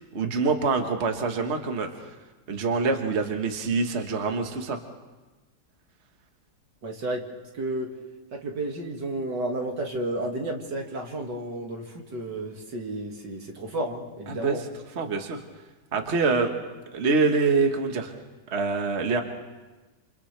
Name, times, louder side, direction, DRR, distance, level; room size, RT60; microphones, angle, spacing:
voice 1, 0.1-1.9 2.5-4.8 14.3-14.6 14.9-15.4 15.9-16.5 16.9-18.1 18.5-19.2, right 4 dB, 40° right, 4 dB, 1.6 m, -25 dB
voice 2, 6.8-7.2 7.5-7.9 8.3-14.7, right 1 dB, 75° right, 1 dB, 2.7 m, -32 dB
29.0 x 28.0 x 3.4 m, 1.2 s
omnidirectional pair, 1.9 m